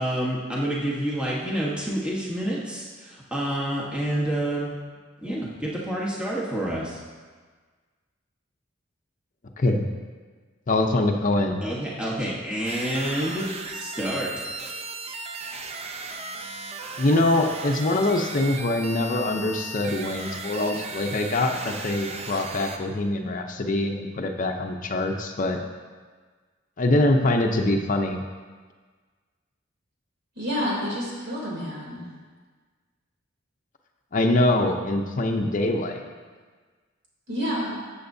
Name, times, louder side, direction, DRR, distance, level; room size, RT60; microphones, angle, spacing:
voice 1, 0.0-4.8 5.2-7.0 11.6-14.4, right 1 dB, 5° right, -6 dB, 1.2 m, -28 dB
voice 2, 9.6-9.9 10.7-11.6 17.0-25.6 26.8-28.2 34.1-36.0, left 2 dB, 45° left, 3 dB, 0.6 m, -24 dB
sound 1, 12.6-22.8, right 3 dB, 30° right, 0.6 m, -36 dB
voice 3, 30.3-32.0 37.3-37.8, equal, 60° right, -5 dB, 3.0 m, -29 dB
13.5 x 7.1 x 2.7 m, 1.5 s
head